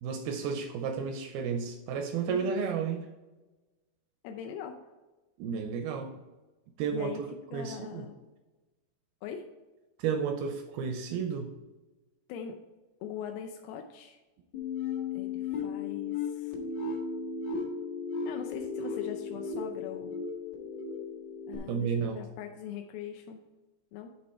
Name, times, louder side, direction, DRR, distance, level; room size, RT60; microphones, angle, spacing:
voice 1, 0.0-3.1 5.4-6.1 6.8-7.3 7.5-8.1 10.0-11.5 21.7-22.2, right 6 dB, 85° right, 5 dB, 2.2 m, -32 dB
voice 2, 4.2-4.8 6.9-8.2 9.2-9.5 12.3-12.6 13.0-14.2 15.1-16.6 18.3-20.3 21.5-23.4 23.9-24.1, left 7 dB, 80° left, 4 dB, 2.2 m, -41 dB
sound 1, 14.5-21.6, left 5 dB, 60° left, 1.1 m, -35 dB
10.5 x 4.2 x 4.3 m, 1.1 s
omnidirectional pair, 4.9 m